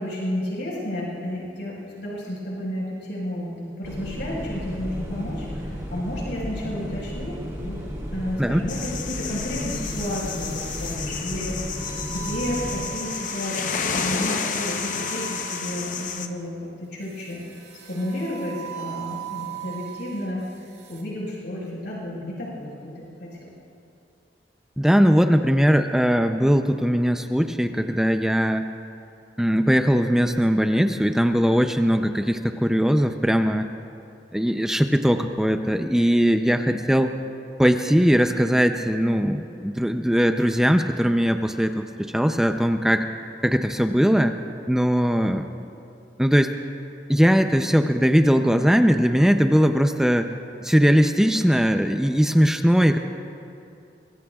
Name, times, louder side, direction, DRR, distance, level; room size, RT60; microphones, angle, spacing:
voice 1, 0.0-7.8 8.1-11.8 12.1-17.4 17.9-20.4 20.9-23.5 35.9-36.1 36.7-36.9, left 1 dB, 90° left, -5 dB, 4.8 m, -32 dB
sound 1, 3.8-12.9, equal, 20° right, 2.7 m, -33 dB
sound 2, 8.7-16.3, left 6 dB, 45° left, 0.8 m, -31 dB
sound 3, 9.8-11.0 11.6-15.9 17.1-20.3 20.7-21.0, right 10 dB, 70° right, 2.3 m, -39 dB
voice 2, 24.8-28.7 29.4-33.7 34.3-37.1 37.6-43.1 43.4-44.3 44.7-45.5 46.2-46.5 47.1-50.3 50.6-53.0, equal, 5° right, 6 dB, 0.4 m, -20 dB
24.0 x 22.5 x 2.4 m, 2.6 s
head